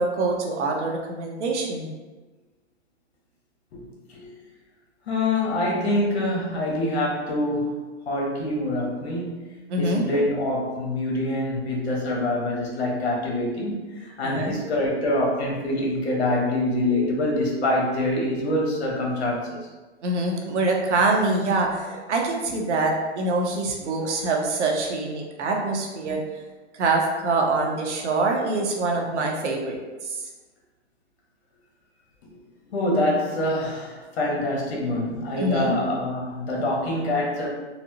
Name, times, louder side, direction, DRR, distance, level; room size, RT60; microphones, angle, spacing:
voice 1, 0.0-1.9 9.7-10.2 14.2-14.6 20.0-26.2 26.7-30.2 35.4-35.8, right 2 dB, 80° right, 1 dB, 0.8 m, -25 dB
voice 2, 5.1-9.4 9.8-19.6 32.7-37.5, left 1 dB, 65° left, -2 dB, 1.1 m, -25 dB
4.1 x 2.0 x 2.7 m, 1.2 s
hypercardioid pair, 175°, 34 cm